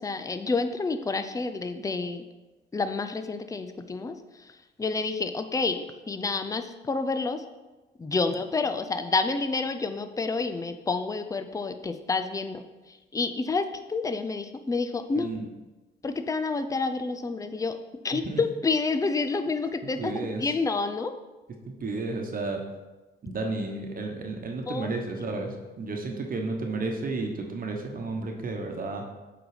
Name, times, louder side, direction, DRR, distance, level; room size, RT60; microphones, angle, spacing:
voice 1, 0.0-2.2 2.7-7.4 8.0-15.3 16.0-17.8 18.0-20.1 20.4-21.1 24.7-24.9, left 4 dB, 15° left, 9 dB, 0.5 m, -29 dB
voice 2, 19.8-20.4 21.7-22.6 23.2-29.0, right 3 dB, 45° right, 2 dB, 1.1 m, -32 dB
7.7 x 4.0 x 5.0 m, 1.1 s
cardioid pair, 90°, 20 cm